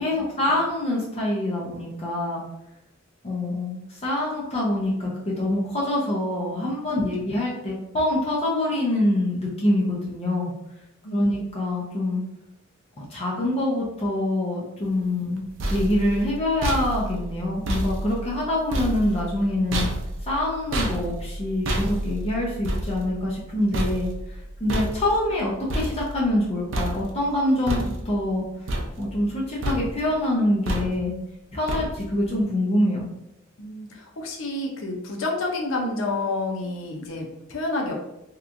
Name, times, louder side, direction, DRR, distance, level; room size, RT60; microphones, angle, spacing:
voice 1, 0.0-2.4 3.2-10.5 11.1-12.2 13.0-15.5 15.7-19.9 20.3-28.4 29.0-31.1 31.5-33.1, left 1 dB, 30° left, -4 dB, 0.5 m, -25 dB
voice 2, 11.0-11.4 33.6-37.9, left 2 dB, 80° left, 1 dB, 0.6 m, -29 dB
sound 1, 15.2-26.5 26.7-27.3 27.7-28.3 28.7-29.4 29.6-30.1 30.7-31.2 31.7-32.2, right 1 dB, 70° right, 0.4 m, -30 dB
2.9 x 2.3 x 2.5 m, 0.88 s
head